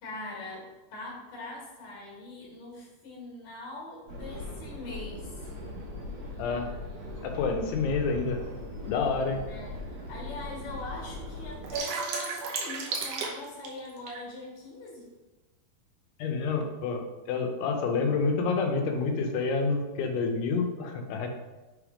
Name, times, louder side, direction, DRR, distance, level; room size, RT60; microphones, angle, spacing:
voice 1, 0.0-5.5 9.5-15.1, left 2 dB, 60° left, -3 dB, 3.1 m, -42 dB
sound 1, 4.1-11.8, left 2 dB, 55° right, 3.0 m, -40 dB
voice 2, 7.2-8.4 8.9-9.4 16.2-17.0 17.3-21.3, left 4 dB, 90° left, 3 dB, 2.8 m, -28 dB
sound 2, 8.4-8.5 9.2-9.3 9.7-9.8 10.1-10.7 11.1-14.2, right 4 dB, 70° right, 2.0 m, -33 dB
6.5 x 3.5 x 4.9 m, 1.1 s
omnidirectional pair, 4.5 m